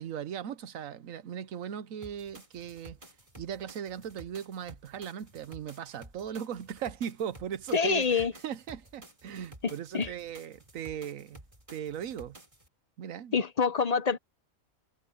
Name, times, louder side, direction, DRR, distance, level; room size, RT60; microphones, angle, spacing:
voice 1, 0.0-3.0 3.4-11.4 11.7-12.4 13.0-13.4, right 9 dB, 70° right, 1.2 m, -38 dB
sound 1, 2.0-12.7, right 1 dB, 20° right, 4.4 m, -53 dB
voice 2, 7.7-8.3 9.6-10.1 13.3-14.2, left 5 dB, 35° left, 0.7 m, -26 dB
omnidirectional pair, 1.5 m